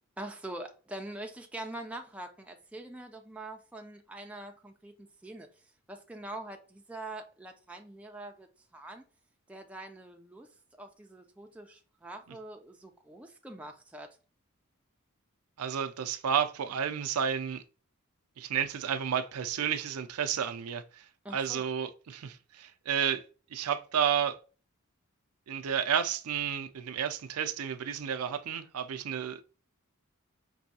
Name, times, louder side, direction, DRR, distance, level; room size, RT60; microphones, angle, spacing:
voice 1, 0.2-8.5 8.7-9.0 9.5-10.5 10.8-14.2 21.2-21.7, right 1 dB, 5° right, 0.4 m, -44 dB
voice 2, 15.6-17.6 18.4-21.0 21.3-23.2 23.5-24.4 25.5-29.4, right 8 dB, 80° right, 0.4 m, -31 dB
5.3 x 2.7 x 2.7 m
head